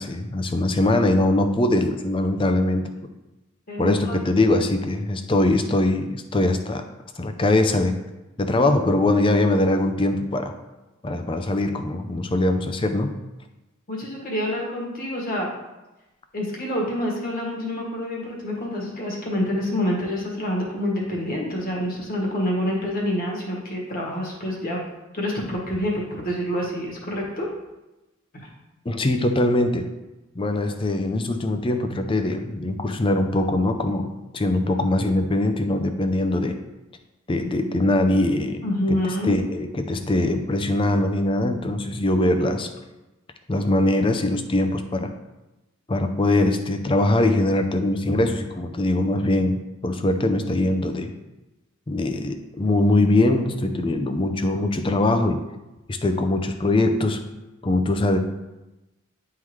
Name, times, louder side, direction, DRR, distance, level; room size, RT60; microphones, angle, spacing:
voice 1, 0.0-2.9 3.8-6.8 7.2-7.9 8.4-10.5 11.0-13.2 28.9-29.9 30.3-36.6 37.3-38.6 38.9-39.0 39.2-42.7 43.5-45.1 45.9-51.1 51.9-55.4 55.9-57.2 57.6-58.2, left 2 dB, 25° left, 7 dB, 0.5 m, -22 dB
voice 2, 3.7-4.2 13.9-15.5 16.3-24.8 25.1-27.5 28.3-28.5 38.6-39.4, left 1 dB, 45° left, -2 dB, 1.6 m, -27 dB
9.9 x 3.8 x 3.1 m, 1.0 s
head